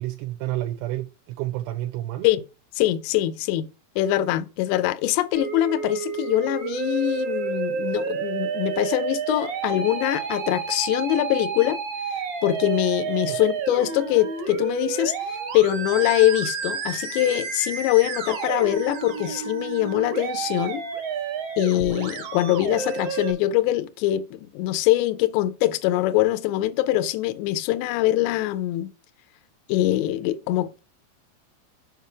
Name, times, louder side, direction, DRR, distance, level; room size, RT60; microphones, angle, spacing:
voice 1, 0.0-2.3 13.3-13.4, right 15 dB, 85° right, 2.6 m, -30 dB
voice 2, 2.7-3.7 4.0-11.8 12.4-15.2 15.5-20.9 21.6-28.9 29.7-30.8, left 14 dB, 80° left, 2.7 m, -23 dB
Musical instrument, 5.3-23.3, right 6 dB, 55° right, 1.8 m, -30 dB
7.5 x 5.5 x 4.7 m
omnidirectional pair, 5.3 m